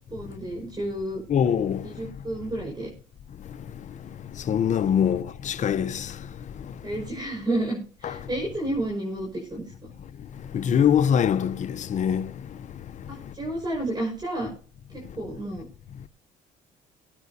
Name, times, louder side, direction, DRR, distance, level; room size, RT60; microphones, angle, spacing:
voice 1, 0.1-1.2 1.8-2.9 5.0-5.2 6.8-9.9 13.1-14.5 14.9-15.7, right 1 dB, 25° right, 5.9 m, -31 dB
voice 2, 1.3-2.1 3.5-6.8 8.0-8.1 10.3-13.3, left 8 dB, 45° left, 0.8 m, -25 dB
23.0 x 9.4 x 2.8 m
cardioid pair, 110°, 17 cm